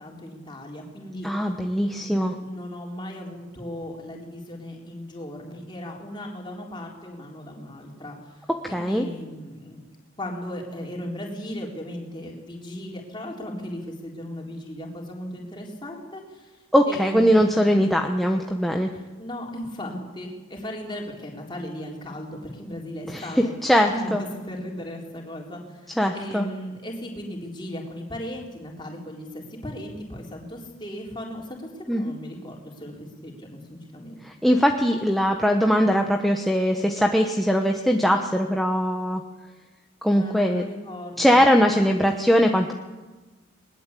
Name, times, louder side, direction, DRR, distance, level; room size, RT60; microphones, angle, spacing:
voice 1, 0.0-1.3 2.0-8.4 8.7-17.9 18.9-23.5 23.9-25.9 26.1-34.2 40.1-41.4, left 1 dB, 20° left, -1 dB, 4.1 m, -37 dB
voice 2, 1.2-2.3 8.6-9.1 16.7-18.9 23.1-24.2 26.0-26.5 31.9-32.1 34.2-39.2 40.0-40.6 41.2-42.7, equal, ahead, 3 dB, 1.0 m, -21 dB
21.0 x 20.5 x 8.4 m, 1.2 s
head